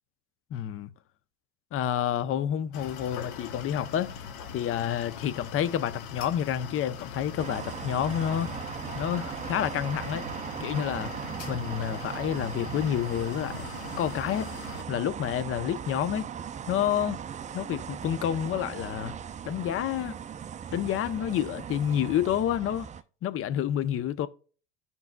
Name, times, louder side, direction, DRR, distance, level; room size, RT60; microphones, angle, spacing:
voice 1, 0.5-0.9 1.7-4.2 4.5-8.5 8.9-10.3 10.6-11.1 11.5-13.7 14.0-14.5 14.9-16.3 16.7-17.2 17.5-19.2 19.4-20.2 20.7-22.9 23.2-24.3, left 10 dB, 40° left, 0.7 m, -29 dB
sound 1, 2.7-14.8, left 7 dB, 70° left, 1.0 m, -41 dB
sound 2, 7.4-23.0, right 8 dB, 20° right, 0.4 m, -38 dB
15.5 x 5.4 x 2.2 m
hypercardioid pair, 85°, 34 cm